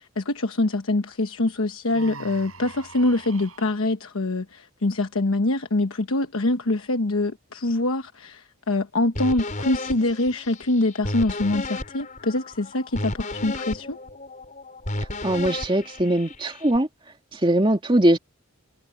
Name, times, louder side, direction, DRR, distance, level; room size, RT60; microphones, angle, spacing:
voice 1, 0.0-14.0, left 2 dB, 85° left, 1.1 m, -24 dB
Human voice, 1.9-3.8, right 4 dB, 90° right, 6.9 m, -42 dB
sound 1, 9.2-16.8, left 2 dB, 40° left, 5.0 m, -33 dB
voice 2, 15.2-16.9 17.4-18.2, right 1 dB, 25° right, 2.1 m, -20 dB
head